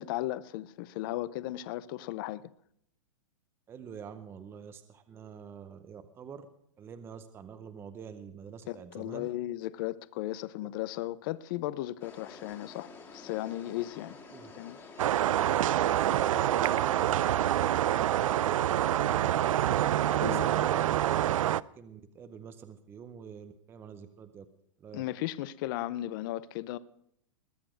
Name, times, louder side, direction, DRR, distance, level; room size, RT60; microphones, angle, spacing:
voice 1, 0.0-2.5 8.7-14.2 14.6-14.8 20.1-20.7 24.9-26.8, left 15 dB, 40° left, 0.6 m, -36 dB
voice 2, 3.7-6.5 6.8-9.3 14.3-14.5 15.9-17.3 20.0-21.3 21.8-24.5 24.8-25.0, right 7 dB, 15° right, 0.7 m, -46 dB
sound 1, 12.0-17.6, left 4 dB, 15° left, 2.0 m, -49 dB
sound 2, 15.0-21.6, right 12 dB, 90° right, 0.4 m, -26 dB
20.5 x 6.9 x 6.3 m
supercardioid pair, 155°, 17 cm